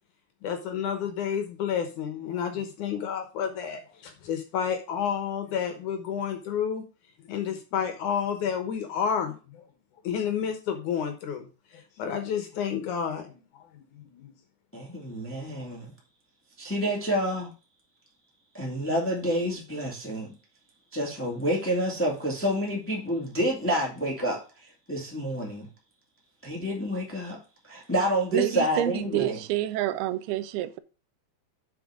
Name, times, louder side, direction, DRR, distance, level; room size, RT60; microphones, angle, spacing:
voice 1, 0.4-6.8 7.3-9.6 10.0-11.5 11.7-14.3 15.4-15.5, left 8 dB, 65° left, 2.1 m, -30 dB
voice 2, 14.7-15.9 16.6-17.5 18.5-20.3 20.9-24.4 24.9-25.7 26.4-27.4 27.6-29.4, equal, 10° left, 0.8 m, -28 dB
voice 3, 28.3-30.8, right 14 dB, 90° right, 2.6 m, -28 dB
7.8 x 5.9 x 4.9 m
omnidirectional pair, 4.4 m